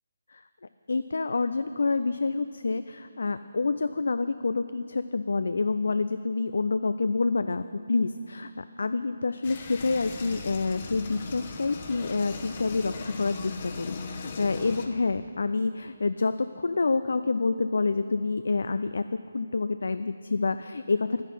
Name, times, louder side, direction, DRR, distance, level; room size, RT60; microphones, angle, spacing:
voice 1, 0.9-21.2, left 3 dB, 65° left, 12 dB, 0.3 m, -28 dB
sound 1, 9.4-14.9, left 4 dB, 35° left, 1.0 m, -39 dB
11.0 x 10.0 x 5.5 m, 2.7 s
figure-of-eight pair, 145°, 0 cm